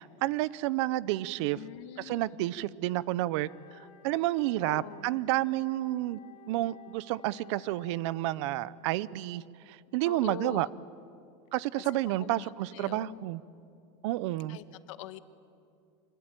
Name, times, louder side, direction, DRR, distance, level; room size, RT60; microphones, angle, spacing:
voice 1, 0.0-1.6 2.0-3.5 4.0-6.2 6.5-9.4 9.7-10.7 11.5-13.4 14.0-14.6, right 16 dB, 65° right, 20 dB, 0.7 m, -30 dB
voice 2, 1.4-2.5 4.6-5.2 10.0-10.8 11.8-13.3 14.5-15.2, left 15 dB, 75° left, 12 dB, 1.3 m, -45 dB
Wind instrument woodwind instrument, 3.3-8.5, left 8 dB, 30° left, 4.2 m, -55 dB
25.5 x 23.5 x 9.1 m, 2.5 s
supercardioid pair, 170°, 16 cm